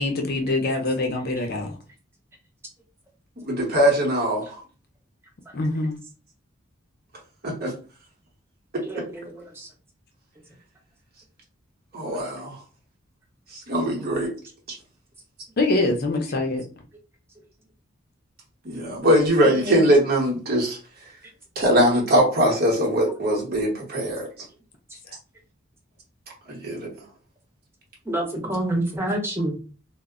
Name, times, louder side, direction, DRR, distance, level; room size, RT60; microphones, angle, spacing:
voice 1, 0.0-1.7 5.5-6.0 15.6-16.6, left 2 dB, 50° left, 0.5 m, -24 dB
voice 2, 3.4-4.6 7.4-7.7 8.7-9.1 11.9-12.6 13.5-14.3 14.7-14.8 18.6-20.8 21.6-24.3 26.5-26.9, equal, 55° right, 1.0 m, -21 dB
voice 3, 8.8-9.7 19.4-19.8 28.1-29.6, right 1 dB, 15° right, 0.7 m, -28 dB
2.1 x 2.0 x 3.5 m
head